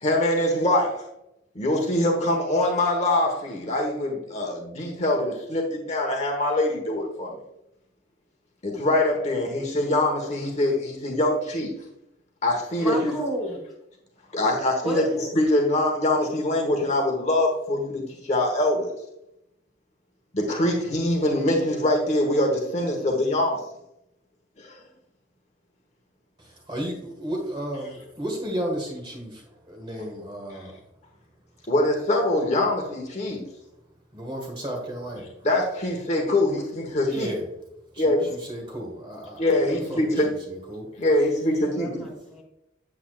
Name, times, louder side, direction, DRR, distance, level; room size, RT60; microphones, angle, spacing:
voice 1, 0.0-1.1 1.5-7.3 8.6-11.7 12.4-13.1 14.3-15.1 15.3-18.9 20.3-23.6 24.6-24.8 31.7-33.5 35.4-37.3 38.0-38.3 39.4-40.3 41.0-42.1, left 1 dB, 35° left, 1 dB, 1.2 m, -23 dB
voice 2, 12.8-13.6 14.8-15.3 41.7-42.4, equal, ahead, -4 dB, 3.2 m, -31 dB
voice 3, 26.4-30.8 34.1-35.3 37.1-37.5 37.9-40.1 40.5-40.9, right 1 dB, 25° right, 1 dB, 1.6 m, -33 dB
8.5 x 8.3 x 2.4 m, 0.84 s
head